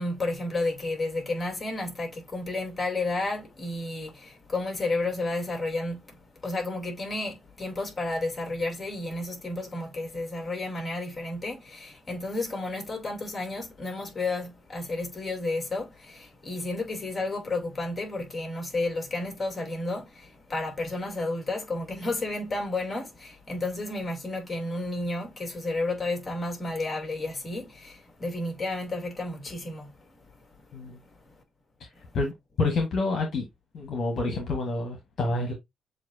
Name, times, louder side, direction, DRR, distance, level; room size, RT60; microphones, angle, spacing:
voice 1, 0.0-6.2 6.4-29.9, left 2 dB, 30° left, 2.7 m, -32 dB
voice 2, 32.1-33.5 33.7-35.5, left 3 dB, 60° left, 1.4 m, -28 dB
7.2 x 2.6 x 2.6 m
cardioid pair, 90°, 0 cm